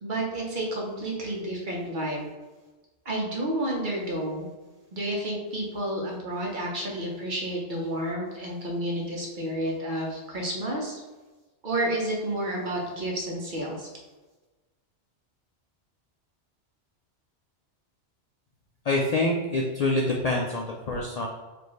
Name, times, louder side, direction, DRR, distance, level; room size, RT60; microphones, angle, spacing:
voice 1, 0.0-2.3 3.0-4.5 4.9-11.0 11.6-13.9, right 1 dB, 45° right, -2 dB, 0.9 m, -30 dB
voice 2, 18.9-21.3, left 2 dB, 90° left, -1 dB, 0.3 m, -26 dB
4.5 x 2.6 x 3.1 m, 1.2 s
omnidirectional pair, 1.2 m